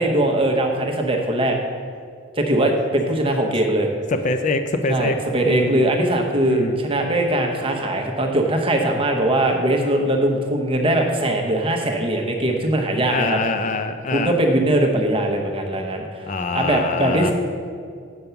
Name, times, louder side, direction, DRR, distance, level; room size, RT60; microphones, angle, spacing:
voice 1, 0.0-1.6 2.4-3.9 4.9-13.4 14.1-16.3 16.5-17.3, right 1 dB, 25° right, 2 dB, 0.8 m, -21 dB
voice 2, 4.1-5.9 6.5-6.8 13.1-14.4 16.2-17.3, left 3 dB, 35° left, 7 dB, 0.4 m, -24 dB
8.0 x 5.3 x 5.7 m, 2.3 s
head